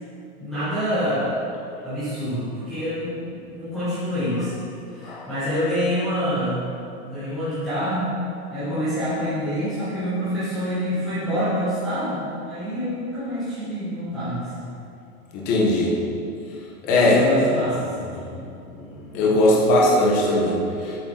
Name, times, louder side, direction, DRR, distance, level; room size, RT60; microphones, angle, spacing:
voice 1, 0.4-1.3 1.8-6.6 7.0-8.1 8.5-14.6 16.8-18.3, equal, ahead, -21 dB, 0.4 m, -26 dB
voice 2, 15.3-15.9 16.8-17.2 18.2-18.3 18.7-21.0, left 1 dB, 20° left, -3 dB, 1.1 m, -20 dB
13.0 x 8.9 x 3.9 m, 2.7 s
supercardioid pair, 175°, 43 cm